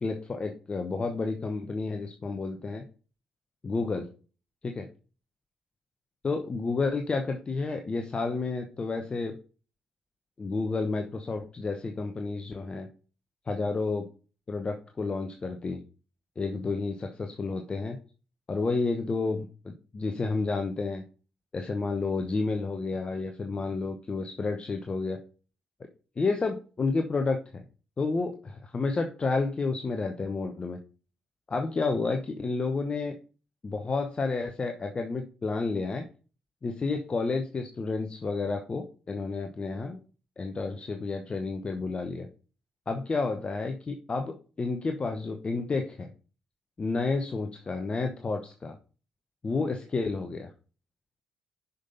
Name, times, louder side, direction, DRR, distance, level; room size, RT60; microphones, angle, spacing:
voice 1, 0.0-2.8 3.6-4.1 4.6-4.9 6.2-9.4 10.4-12.9 13.5-14.1 14.5-15.8 16.4-18.0 18.5-21.0 21.5-25.2 26.2-27.6 28.0-30.8 31.5-33.1 33.6-36.1 36.6-40.0 40.4-42.3 42.9-46.1 46.8-48.7 49.4-50.5, left 3 dB, 35° left, 5 dB, 1.0 m, -30 dB
6.4 x 5.5 x 4.1 m, 0.36 s
figure-of-eight pair, 40°, 3 cm